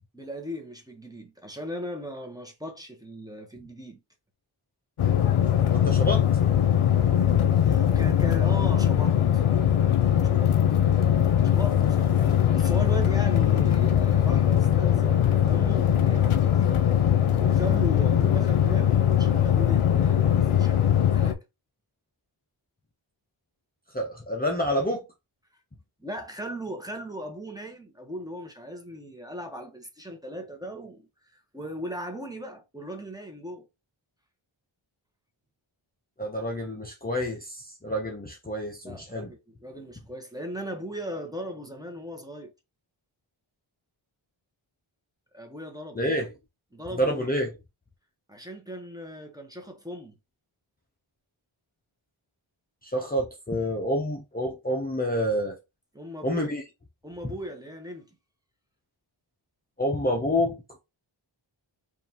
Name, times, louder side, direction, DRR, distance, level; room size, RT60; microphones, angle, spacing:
voice 1, 0.1-4.0 7.6-9.4 10.2-10.6 11.4-12.2 12.5-16.7 17.4-21.4 26.0-33.7 38.8-42.5 45.3-46.1 46.7-47.3 48.3-50.2 55.9-56.5 57.0-58.1, equal, 10° right, 1.0 m, -38 dB
sound 1, 5.0-21.3, left 10 dB, 90° left, 0.6 m, -21 dB
voice 2, 5.7-6.2 23.9-25.0 36.2-39.3 45.9-46.3 47.0-47.5 52.8-55.6 56.2-56.6 57.2-57.3 59.8-60.6, equal, 20° left, 0.7 m, -28 dB
5.1 x 2.6 x 2.9 m
wide cardioid pair, 75°, 49 cm